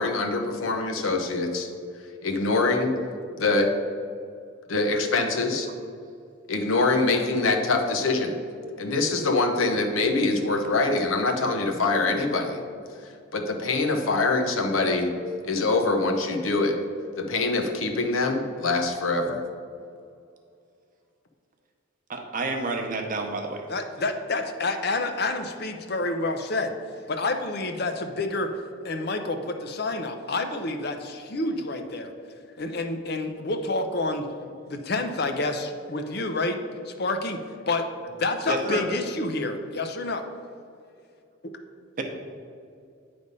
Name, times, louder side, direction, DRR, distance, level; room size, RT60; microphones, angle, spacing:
voice 1, 0.0-1.7 2.2-2.9 3.4-3.7 4.7-5.7 6.5-8.4 8.8-12.6 13.3-15.1 15.4-16.8 17.2-19.4, left 3 dB, 80° left, 3 dB, 0.8 m, -24 dB
voice 2, 22.1-23.7 38.5-38.9 42.0-42.1, right 2 dB, 40° right, 3 dB, 0.8 m, -29 dB
voice 3, 23.7-26.7 27.1-28.5 28.8-32.1 32.6-34.3 34.7-36.6 36.9-37.4 37.7-40.2, left 2 dB, 50° left, 6 dB, 0.6 m, -28 dB
9.4 x 3.4 x 5.3 m, 2.4 s
head